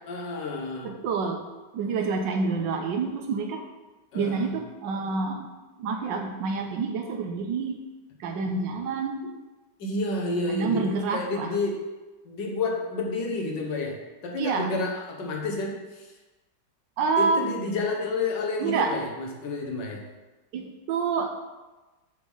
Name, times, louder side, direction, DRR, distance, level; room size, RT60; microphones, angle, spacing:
voice 1, 0.1-1.0 4.1-4.5 9.8-10.8 11.1-11.8 12.3-14.0 14.2-16.1 17.2-20.0, left 2 dB, 75° left, 0 dB, 1.9 m, -30 dB
voice 2, 0.8-1.4 1.7-3.7 4.1-5.5 5.8-7.8 8.2-9.2 10.5-11.5 14.4-14.7 17.0-17.5 18.6-18.9 20.5-21.4, right 4 dB, 85° right, 3 dB, 1.5 m, -28 dB
8.8 x 3.6 x 6.4 m, 1.2 s
omnidirectional pair, 1.9 m